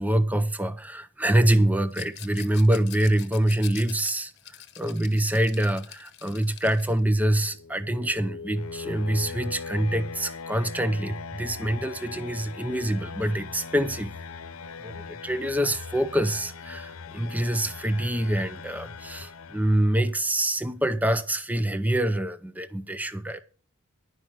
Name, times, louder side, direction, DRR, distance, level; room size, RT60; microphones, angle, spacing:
voice 1, 0.0-4.3 4.8-14.1 14.8-23.4, right 1 dB, 5° right, 0.6 m, -25 dB
Rattle, 1.9-7.0, left 12 dB, 55° left, 1.0 m, -45 dB
sound 1, 7.3-20.2, left 5 dB, 85° left, 0.8 m, -40 dB
11.0 x 5.8 x 7.8 m
head